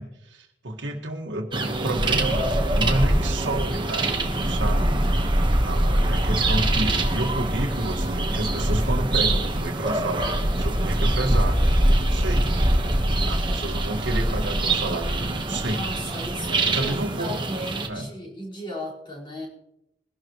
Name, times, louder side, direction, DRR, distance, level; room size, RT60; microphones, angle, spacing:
voice 1, 0.0-11.6 11.9-12.5 13.2-15.9 16.7-17.4 17.9-18.1, right 1 dB, 75° right, 1 dB, 1.8 m, -30 dB
sound 1, 1.5-17.9, right 1 dB, 25° right, 1.4 m, -23 dB
voice 2, 15.7-19.5, equal, 30° left, -5 dB, 4.9 m, -36 dB
22.0 x 12.0 x 3.2 m, 0.87 s
head